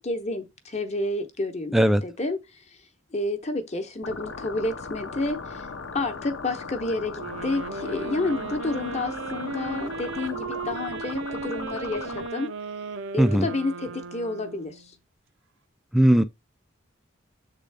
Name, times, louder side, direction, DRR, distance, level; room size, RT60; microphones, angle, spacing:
voice 1, 0.0-2.8 3.1-5.7 5.9-12.5 13.1-14.9, left 2 dB, 35° left, 0.9 m, -30 dB
voice 2, 1.7-2.0 13.2-13.5 15.9-16.2, equal, ahead, 0.3 m, -18 dB
sound 1, 4.0-12.3, left 4 dB, 75° left, 0.7 m, -38 dB
sound 2, 7.2-14.9, right 4 dB, 75° right, 0.7 m, -36 dB
7.4 x 3.7 x 3.4 m
head